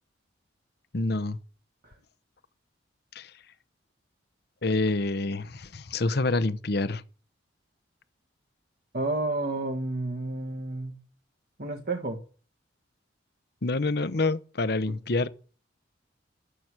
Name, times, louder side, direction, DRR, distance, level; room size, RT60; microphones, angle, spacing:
voice 1, 0.9-1.4 3.1-3.3 4.6-7.0 13.6-15.3, left 2 dB, 55° left, 0.9 m, -27 dB
voice 2, 8.9-11.0 11.6-12.2, right 2 dB, 50° right, 1.7 m, -31 dB
13.5 x 7.9 x 9.6 m
head